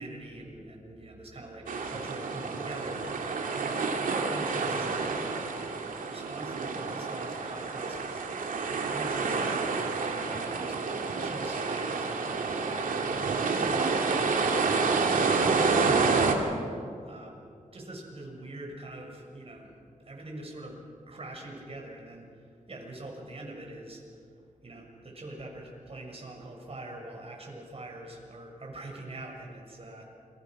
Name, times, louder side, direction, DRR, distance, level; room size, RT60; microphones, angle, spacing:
voice 1, 0.0-3.5 4.0-16.5 16.8-17.3 17.7-24.2 24.6-30.0, right 1 dB, 45° right, 0 dB, 6.6 m, -43 dB
sound 1, 1.7-16.3, right 4 dB, 85° right, 2.7 m, -29 dB
29.5 x 24.0 x 6.2 m, 2.3 s
cardioid pair, 75°, 14 cm